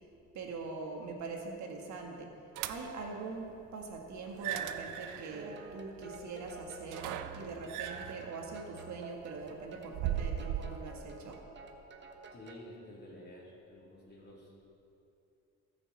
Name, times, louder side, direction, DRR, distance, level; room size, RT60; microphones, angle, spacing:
voice 1, 0.3-2.3 2.6-11.4, right 3 dB, 65° right, 1 dB, 1.8 m, -43 dB
sound 1, 2.5-3.1 4.3-10.9, right 10 dB, 85° right, 0.6 m, -39 dB
sound 2, 5.3-12.7, right 3 dB, 35° right, 1.2 m, -51 dB
voice 2, 12.3-14.7, left 1 dB, 35° left, -4 dB, 3.2 m, -51 dB
19.0 x 6.9 x 4.3 m, 2.7 s
cardioid pair, 100°, 30 cm